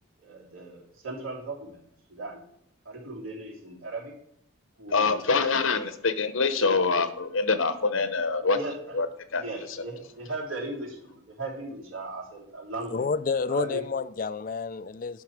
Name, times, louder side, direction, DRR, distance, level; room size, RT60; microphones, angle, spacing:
voice 1, 0.2-1.8 2.1-2.4 2.8-4.1 4.8-5.2 6.5-6.7 8.4-9.0 9.3-13.0 13.5-13.8, right 2 dB, 80° right, 3.2 m, -37 dB
voice 2, 4.9-8.6 8.9-9.1 9.3-9.4, left 4 dB, 75° left, 0.9 m, -25 dB
voice 3, 12.9-15.2, left 5 dB, 40° left, 0.3 m, -29 dB
10.5 x 5.8 x 6.3 m
head